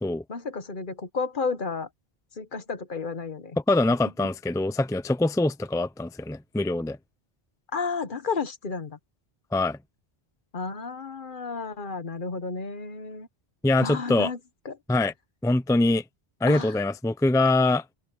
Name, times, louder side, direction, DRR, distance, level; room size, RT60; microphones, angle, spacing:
voice 1, 0.3-1.9 2.4-3.6 7.7-9.0 10.5-13.3 13.8-14.4 14.6-14.8 16.5-16.7, left 4 dB, 55° left, 1.3 m, -32 dB
voice 2, 3.7-7.0 9.5-9.8 13.6-14.3 14.9-15.1 15.4-16.0 16.4-17.8, left 2 dB, 5° left, 0.5 m, -23 dB
open air
omnidirectional pair, 1.0 m